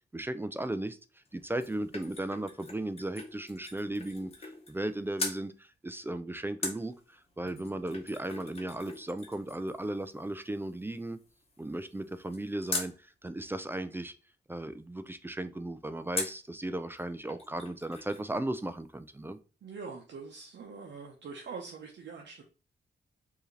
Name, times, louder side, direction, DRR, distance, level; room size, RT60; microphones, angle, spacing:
voice 1, 0.1-1.0 1.3-11.2 11.6-14.1 14.5-19.4, right 1 dB, 10° right, 0.3 m, -36 dB
sound 1, 1.3-4.9 5.2-5.4 6.6-13.0 16.1-16.5 17.0-17.1 17.3-18.3 18.6-18.7, left 3 dB, 35° left, 1.0 m, -41 dB
voice 2, 19.6-22.4, right 5 dB, 75° right, 0.7 m, -44 dB
4.7 x 2.7 x 3.2 m
wide cardioid pair, 135°, 19 cm